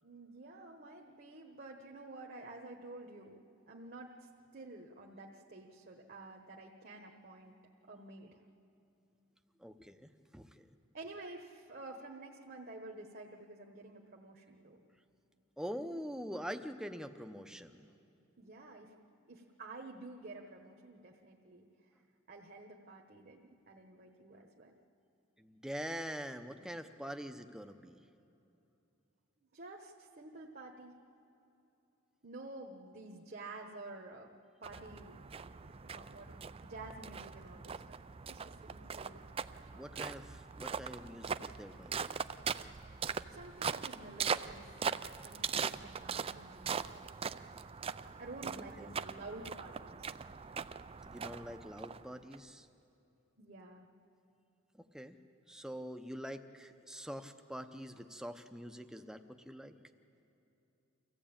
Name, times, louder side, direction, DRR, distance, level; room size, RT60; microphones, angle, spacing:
voice 1, 0.0-7.5 7.9-8.4 10.9-14.9 18.4-18.9 19.3-21.9 22.3-24.8 29.4-31.0 32.2-34.3 34.6-38.0 38.3-39.2 39.7-40.1 43.3-44.7 45.2-46.7 48.2-50.2 53.4-53.9, right 2 dB, 45° right, 1 dB, 1.2 m, -50 dB
voice 2, 9.6-10.7 15.6-17.9 25.4-28.0 38.7-38.8 39.7-42.1 48.5-48.9 51.1-52.7 54.7-55.2 55.5-59.7, equal, 5° right, 7 dB, 0.7 m, -45 dB
sound 1, 34.6-52.4, right 6 dB, 30° right, 0.4 m, -41 dB
25.0 x 15.0 x 8.8 m, 2.8 s
head